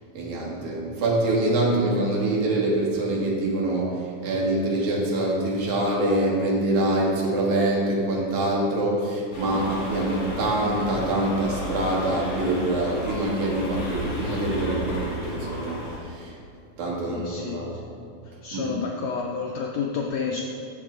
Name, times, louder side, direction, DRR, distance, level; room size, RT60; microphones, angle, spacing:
voice 1, 0.1-16.3 16.8-17.9 18.5-18.7, right 1 dB, 70° right, -4 dB, 2.8 m, -25 dB
sound 1, 9.3-16.0, left 1 dB, 60° left, 2.8 m, -33 dB
voice 2, 17.1-17.6 18.4-20.4, left 5 dB, 85° left, 0 dB, 1.5 m, -29 dB
8.3 x 7.3 x 3.8 m, 2.4 s
omnidirectional pair, 3.5 m